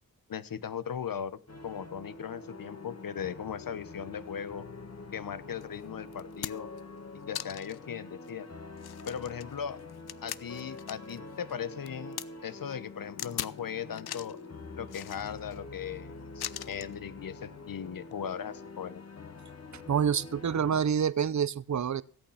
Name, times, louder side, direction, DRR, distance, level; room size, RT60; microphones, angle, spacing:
voice 1, 0.3-4.7 5.1-6.7 7.3-8.5 9.1-9.8 10.2-14.4 14.7-19.0, left 8 dB, 65° left, 1.0 m, -38 dB
sound 1, 1.5-20.8, left 3 dB, 40° left, 1.7 m, -46 dB
sound 2, 5.6-5.7 6.1-6.8 7.3-7.8 8.3-8.4 8.8-11.2 11.5-12.3 13.2-13.6 13.9-14.4 14.9-15.6 16.4-16.9 18.0-18.2, left 12 dB, 90° left, 0.6 m, -40 dB
voice 2, 19.7-22.0, right 7 dB, 50° right, 0.7 m, -27 dB
17.0 x 8.9 x 5.7 m
cardioid pair, 70°, 37 cm